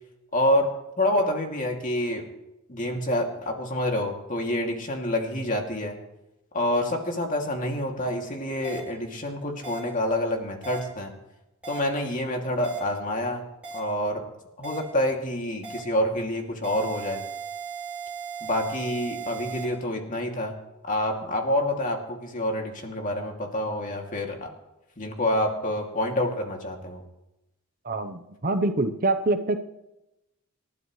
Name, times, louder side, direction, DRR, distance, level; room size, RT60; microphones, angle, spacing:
voice 1, 0.3-0.7 1.0-2.2 2.7-5.9 6.5-11.1 11.7-13.4 13.7-14.2 14.6-17.2 18.4-20.5 20.9-24.5 25.0-27.0, left 1 dB, 35° left, 2 dB, 2.5 m, -27 dB
sound 1, 8.6-8.8 9.6-9.8 10.6-10.8 11.6-11.8 12.6-12.8 13.6-13.8 14.6-14.8 15.6-15.8 16.6-19.6, right 6 dB, 5° right, 7.3 m, -37 dB
voice 2, 27.8-29.6, right 2 dB, 40° right, 9 dB, 0.8 m, -25 dB
28.0 x 12.5 x 3.2 m, 0.93 s
head